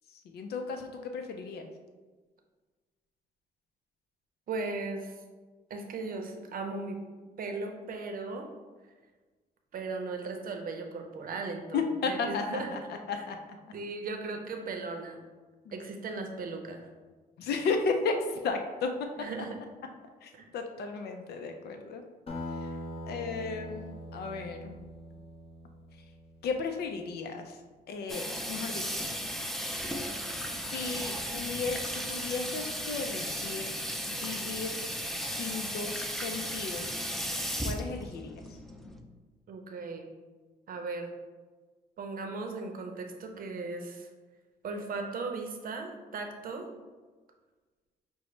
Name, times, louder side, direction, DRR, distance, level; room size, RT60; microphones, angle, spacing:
voice 1, 0.2-1.6 11.7-13.4 15.7-15.8 17.4-18.9 20.2-22.0 22.5-22.7 23.1-24.8 26.4-27.6 27.9-29.0 30.7-33.8 34.0-34.8 35.2-37.1 37.6-38.6, left 4 dB, 80° left, 5 dB, 0.4 m, -34 dB
voice 2, 4.5-5.1 5.7-7.0 7.4-8.5 9.7-12.8 13.1-13.2 13.7-15.2 15.7-16.9 19.2-19.6 20.3-20.5 39.5-40.1 40.7-41.1 42.0-44.1 44.6-46.7, right 3 dB, 60° right, 4 dB, 0.6 m, -37 dB
Acoustic guitar, 22.3-27.1, left 1 dB, 35° left, 0.8 m, -42 dB
Water tap faucet / Sink (filling or washing), 28.1-39.0, equal, ahead, 0.4 m, -35 dB
6.0 x 2.1 x 3.1 m, 1.3 s
cardioid pair, 90°, 16 cm